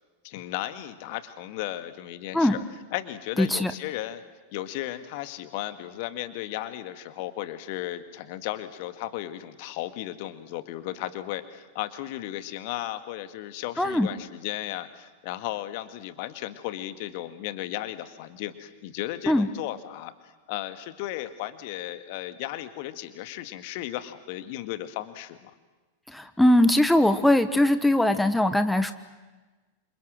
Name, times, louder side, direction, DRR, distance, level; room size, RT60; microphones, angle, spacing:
voice 1, 0.2-2.6 2.9-4.2 4.5-25.5, left 14 dB, 50° left, 11 dB, 1.9 m, -35 dB
voice 2, 3.4-3.7 13.8-14.1 19.3-19.5 26.1-28.9, left 1 dB, 5° left, 10 dB, 1.3 m, -21 dB
28.0 x 27.0 x 7.8 m, 1.2 s
figure-of-eight pair, 90°, 0 cm